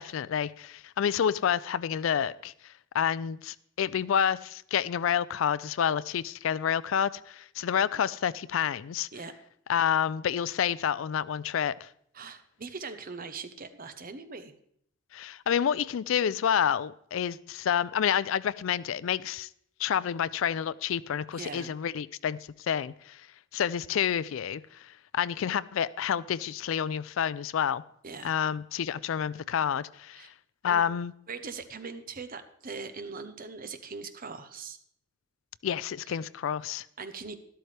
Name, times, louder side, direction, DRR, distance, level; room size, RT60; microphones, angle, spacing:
voice 1, 0.0-9.1 9.7-11.9 15.1-19.5 19.8-22.4 22.7-23.3 23.5-27.8 28.2-30.3 30.6-31.1 35.6-36.9, left 8 dB, 70° left, 19 dB, 0.4 m, -29 dB
voice 2, 12.1-14.5 21.3-21.7 28.0-28.4 30.1-30.3 30.7-30.8 31.3-34.8 36.0-36.2 37.0-37.4, right 4 dB, 45° right, 9 dB, 0.9 m, -41 dB
12.5 x 12.5 x 3.3 m, 0.68 s
head